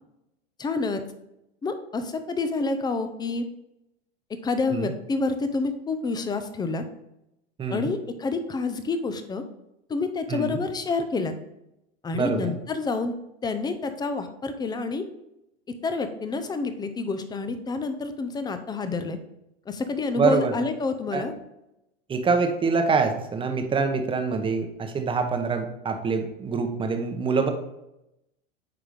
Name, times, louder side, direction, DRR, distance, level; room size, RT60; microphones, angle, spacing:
voice 1, 0.6-1.0 1.6-3.5 4.3-6.8 7.7-9.4 9.9-11.3 12.0-13.1 13.4-15.1 15.8-19.2 19.7-21.3, left 3 dB, 15° left, 10 dB, 0.6 m, -28 dB
voice 2, 7.6-7.9 10.3-10.6 12.1-12.5 20.1-20.5 21.1-21.3 22.1-27.5, right 5 dB, 15° right, 5 dB, 1.0 m, -25 dB
9.2 x 3.6 x 5.0 m, 0.87 s
supercardioid pair, 125°, 30 cm